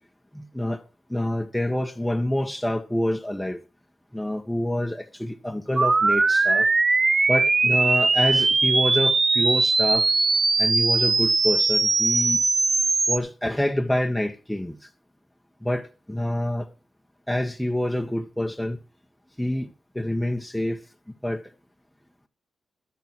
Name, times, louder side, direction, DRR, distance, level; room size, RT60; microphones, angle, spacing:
voice 1, 0.3-0.8 1.1-3.6 4.1-6.7 7.3-10.1 10.6-12.4 13.1-14.8 15.6-16.7 17.3-18.8 19.4-19.7 19.9-20.8 21.2-21.4, left 1 dB, 5° left, 1.4 m, -27 dB
sound 1, 5.8-13.2, right 3 dB, 35° right, 0.6 m, -20 dB
12.5 x 7.0 x 6.0 m
cardioid pair, 60°, 0 cm